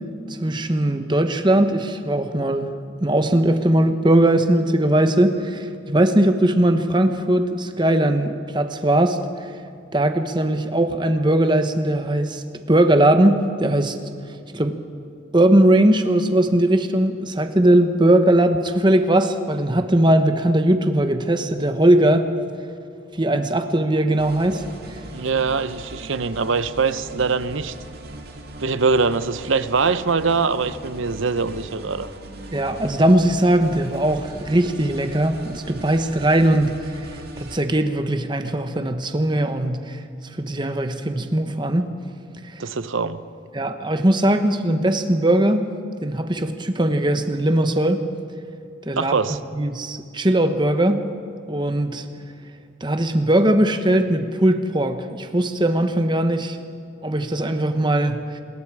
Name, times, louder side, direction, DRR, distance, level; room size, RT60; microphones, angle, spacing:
voice 1, 0.3-2.7 3.0-9.5 9.9-12.4 12.7-14.0 14.5-14.8 15.3-22.3 23.2-24.6 32.5-36.7 37.4-40.0 40.4-41.9 42.5-42.6 43.5-45.6 46.0-48.0 48.8-49.1 49.5-51.0 51.5-52.0 52.8-56.6 57.0-58.2, right 1 dB, 20° right, 8 dB, 1.1 m, -19 dB
sound 1, 24.2-37.6, right 1 dB, 50° right, 2.1 m, -39 dB
voice 2, 25.1-27.7 28.6-32.1 42.6-43.2 49.0-49.4, right 4 dB, 75° right, 13 dB, 0.8 m, -22 dB
26.0 x 21.0 x 4.8 m, 2.6 s
head